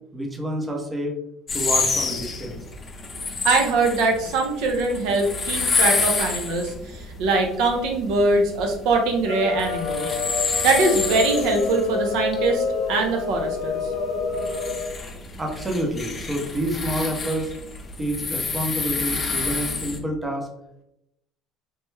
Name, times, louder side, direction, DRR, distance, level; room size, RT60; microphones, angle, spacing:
voice 1, 0.1-1.1 1.5-2.6 15.4-17.5 18.0-20.5, right 1 dB, 15° right, 1 dB, 0.7 m, -28 dB
sound 1, 1.5-20.0, left 4 dB, 30° left, 0.5 m, -29 dB
voice 2, 3.4-10.1 10.5-13.8, right 3 dB, 75° right, 2 dB, 0.6 m, -22 dB
sound 2, 9.2-14.9, left 5 dB, 85° left, 0.6 m, -28 dB
3.2 x 2.1 x 3.1 m, 0.81 s
cardioid pair, 115°, 0 cm